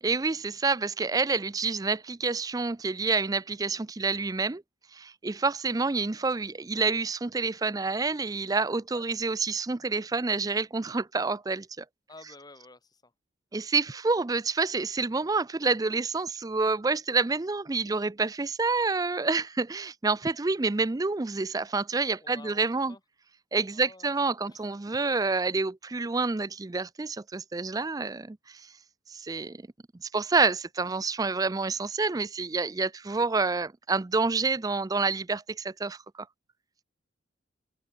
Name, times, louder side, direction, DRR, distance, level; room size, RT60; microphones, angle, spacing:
voice 1, 0.0-4.6 4.9-11.8 13.5-22.9 23.5-28.6 29.1-29.6 30.1-36.0, right 4 dB, 20° right, 0.4 m, -28 dB
voice 2, 12.1-13.1 22.2-23.0 23.7-24.7 25.0-25.1, left 2 dB, 20° left, 2.1 m, -51 dB
head